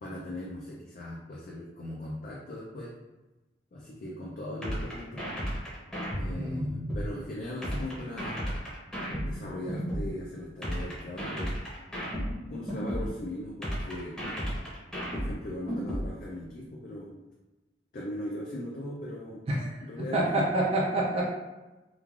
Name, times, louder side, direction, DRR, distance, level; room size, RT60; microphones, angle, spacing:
voice 1, 0.0-2.9 3.7-5.2 6.1-8.4 9.2-11.5 12.5-14.1 15.0-17.1 17.9-20.2, left 1 dB, 50° left, -4 dB, 0.4 m, -39 dB
sound 1, 4.6-7.1 7.6-10.1 10.6-13.1 13.6-16.1, equal, 5° left, 0.7 m, -33 dB
voice 2, 6.3-6.9 19.5-19.8 20.1-21.2, right 2 dB, 35° right, -4 dB, 0.4 m, -28 dB
3.1 x 2.3 x 2.4 m, 1.1 s
head